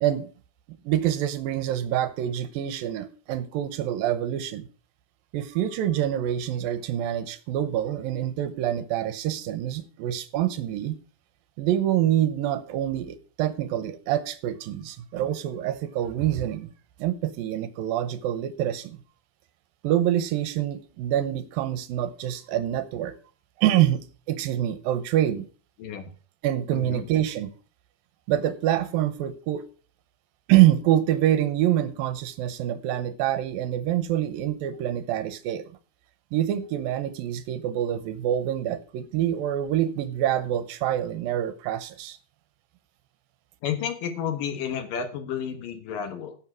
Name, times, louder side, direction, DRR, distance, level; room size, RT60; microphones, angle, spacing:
voice 1, 0.8-4.7 5.3-11.0 11.6-16.7 17.0-19.0 19.8-23.1 23.6-25.5 26.4-27.5 28.3-29.6 30.5-35.6 36.3-42.2, right 12 dB, 80° right, 2.5 m, -26 dB
voice 2, 26.7-27.1 43.6-46.4, left 8 dB, 70° left, 2.9 m, -31 dB
11.5 x 7.5 x 6.2 m
omnidirectional pair, 4.3 m